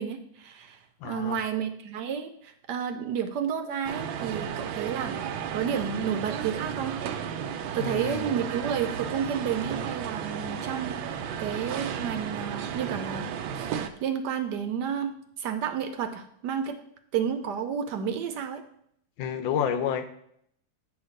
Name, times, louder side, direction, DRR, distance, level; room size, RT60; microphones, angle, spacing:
voice 1, 0.0-5.1 5.5-7.0 7.7-13.3 13.5-16.8 17.1-18.6, right 8 dB, 70° right, 7 dB, 1.1 m, -31 dB
voice 2, 1.0-1.4 7.8-8.3 19.2-20.1, left 8 dB, 85° left, 8 dB, 1.5 m, -29 dB
sound 1, 3.8-13.9, right 8 dB, 90° right, 1.4 m, -34 dB
8.8 x 3.1 x 6.4 m, 0.70 s
omnidirectional pair, 2.1 m